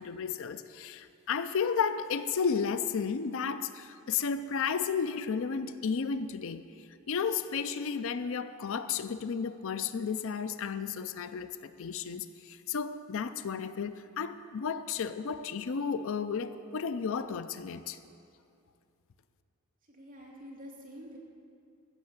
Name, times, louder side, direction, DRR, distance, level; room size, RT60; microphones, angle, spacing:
voice 1, 0.0-6.6 7.1-18.0, left 6 dB, 65° left, 12 dB, 0.5 m, -33 dB
voice 2, 19.9-21.2, equal, 40° right, -4 dB, 2.7 m, -47 dB
15.5 x 6.5 x 7.8 m, 2.5 s
head